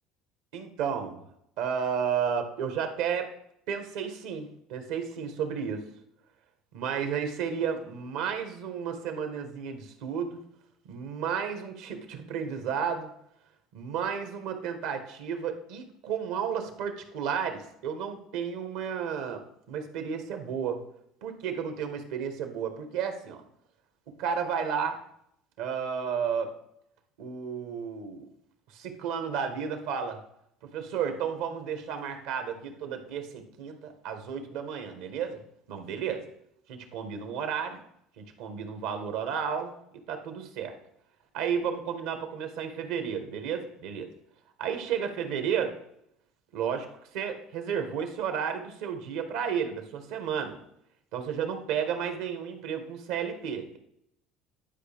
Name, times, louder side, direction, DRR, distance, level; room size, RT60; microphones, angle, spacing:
voice 1, 0.5-1.2 1.6-3.3 3.7-5.9 6.7-10.4 10.8-13.1 13.7-20.8 21.2-23.4 24.1-25.0 25.6-26.5 27.2-28.3 28.7-30.2 30.7-35.4 35.7-36.2 36.7-37.8 38.2-39.7 40.1-40.7 41.3-44.1 44.6-45.8 46.5-46.9 47.1-50.6 51.1-53.8, right 7 dB, 80° right, 7 dB, 1.3 m, -32 dB
11.0 x 4.8 x 3.5 m, 0.74 s
supercardioid pair, 100°, 0 cm